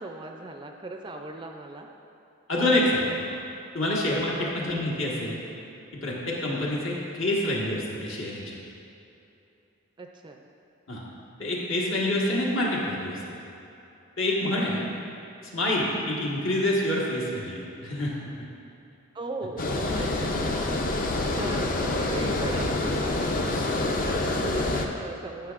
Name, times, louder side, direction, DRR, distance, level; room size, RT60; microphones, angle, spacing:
voice 1, 0.0-1.9 2.7-3.1 4.4-4.5 10.0-10.4 14.5-14.9 19.1-20.5 21.3-25.5, right 2 dB, 20° right, 3 dB, 0.3 m, -38 dB
voice 2, 2.5-3.1 3.7-5.4 5.9-8.5 10.9-11.0 11.4-13.2 14.2-14.8 15.5-18.1 20.0-20.5, left 1 dB, 70° left, -4 dB, 1.5 m, -27 dB
Water, 19.6-24.9, left 2 dB, 40° left, 0.5 m, -27 dB
12.5 x 5.9 x 2.5 m, 2.9 s
head